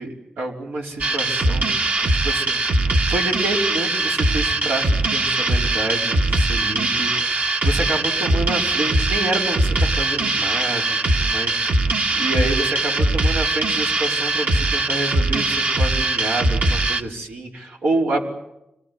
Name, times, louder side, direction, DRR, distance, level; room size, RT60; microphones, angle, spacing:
voice 1, 0.0-18.3, right 2 dB, 85° right, 0 dB, 5.1 m, -28 dB
sound 1, 1.0-17.0, right 2 dB, 50° right, 1.8 m, -21 dB
26.5 x 20.0 x 9.6 m, 0.89 s
wide cardioid pair, 100°, 3 cm